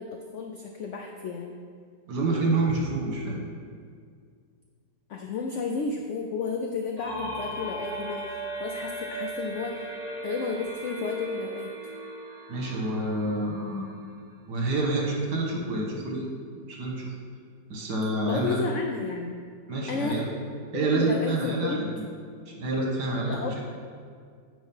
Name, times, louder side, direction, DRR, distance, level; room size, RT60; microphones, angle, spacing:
voice 1, 0.0-1.6 5.1-9.8 10.2-11.7 18.2-19.4 19.9-20.2 20.7-21.8 23.2-23.6, left 4 dB, 85° left, 2 dB, 0.6 m, -32 dB
voice 2, 2.1-3.4 12.5-13.9 14.5-16.3 16.7-17.1 17.7-18.6 19.7-20.3 20.7-22.0 22.5-23.6, right 2 dB, 75° right, -1 dB, 1.7 m, -28 dB
sound 1, 7.0-14.6, right 1 dB, 20° right, 1.9 m, -37 dB
9.4 x 3.2 x 5.4 m, 2.1 s
omnidirectional pair, 1.9 m